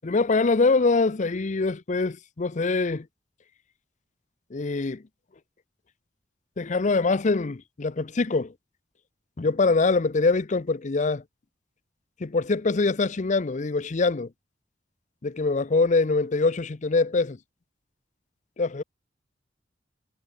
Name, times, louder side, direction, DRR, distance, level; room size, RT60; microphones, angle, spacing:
voice 1, 0.0-3.1 4.5-5.0 6.6-8.5 9.4-11.2 12.2-14.3 15.2-17.4 18.6-18.8, left 3 dB, 40° left, 0.6 m, -24 dB
head